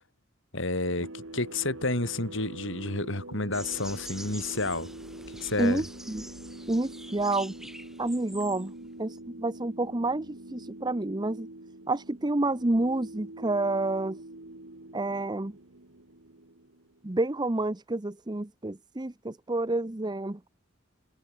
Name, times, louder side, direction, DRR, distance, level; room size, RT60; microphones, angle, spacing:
voice 1, 0.5-4.9 5.4-5.8, left 2 dB, 65° left, 5.1 m, -30 dB
sound 1, 0.8-17.1, right 1 dB, 70° right, 2.6 m, -45 dB
sound 2, 3.5-8.8, right 1 dB, ahead, 4.5 m, -45 dB
voice 2, 5.6-6.3 6.7-7.5 8.0-8.7 9.0-11.5 11.9-14.2 14.9-15.6 17.0-20.5, right 2 dB, 20° right, 0.8 m, -29 dB
head